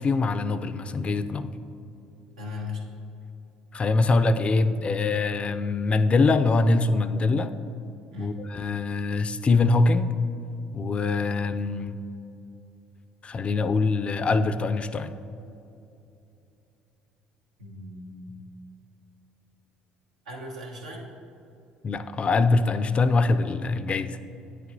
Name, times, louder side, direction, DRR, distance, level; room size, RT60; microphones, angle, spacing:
voice 1, 0.0-1.5 3.7-7.5 8.2-10.1 10.7-12.0 13.2-15.1 21.8-24.2, left 3 dB, 35° left, 12 dB, 0.3 m, -23 dB
voice 2, 2.4-2.8 8.1-8.4 17.6-18.4 20.3-21.1, left 2 dB, 90° right, -1 dB, 0.9 m, -37 dB
8.8 x 6.6 x 2.6 m, 2.8 s
hypercardioid pair, 65°, 3 cm